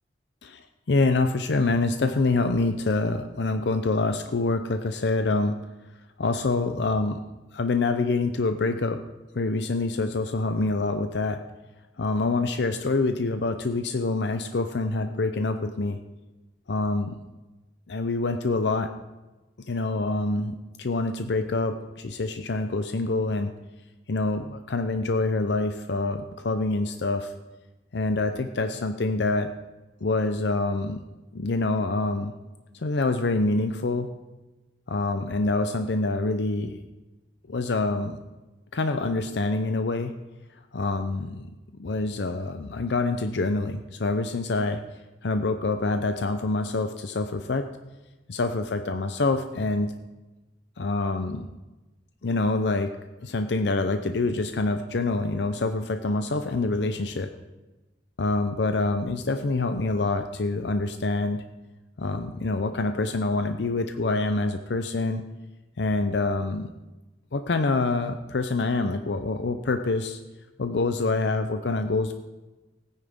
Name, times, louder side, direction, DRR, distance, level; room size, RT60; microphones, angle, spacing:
voice 1, 0.4-5.6 6.2-7.2 7.5-9.0 9.3-11.4 12.0-16.0 16.7-17.2 17.9-18.9 19.6-23.5 24.1-27.3 27.9-29.5 30.0-31.0 31.3-32.3 32.7-34.1 34.9-36.8 37.5-38.2 38.7-40.1 40.7-41.5 41.8-44.8 45.2-47.7 48.3-49.9 50.8-51.5 52.2-53.0 53.2-57.3 58.2-61.4 62.0-65.2 65.8-66.7 67.3-70.2 70.6-72.1, left 3 dB, 75° left, 8 dB, 0.6 m, -26 dB
17.5 x 9.8 x 3.6 m, 1.1 s
head